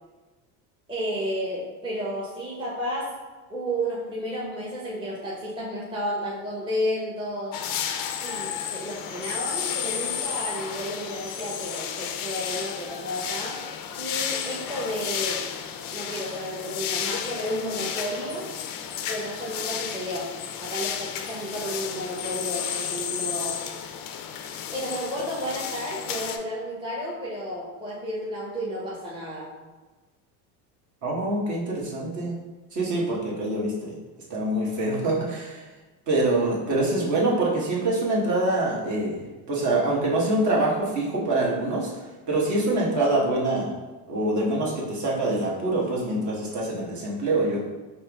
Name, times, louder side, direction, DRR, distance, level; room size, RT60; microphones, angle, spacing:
voice 1, 0.9-3.2 3.5-7.6 8.2-15.5 15.9-18.5 19.1-20.3 20.6-23.6 24.7-29.5, equal, 10° right, -6 dB, 0.8 m, -32 dB
sound 1, 7.5-26.4, left 8 dB, 50° left, 0.5 m, -32 dB
voice 2, 31.0-32.4 32.7-33.9 34.3-35.6 36.1-41.9 42.3-43.7 44.1-47.6, right 2 dB, 40° right, -4 dB, 1.2 m, -25 dB
4.3 x 2.0 x 3.4 m, 1.2 s
supercardioid pair, 95°, 44 cm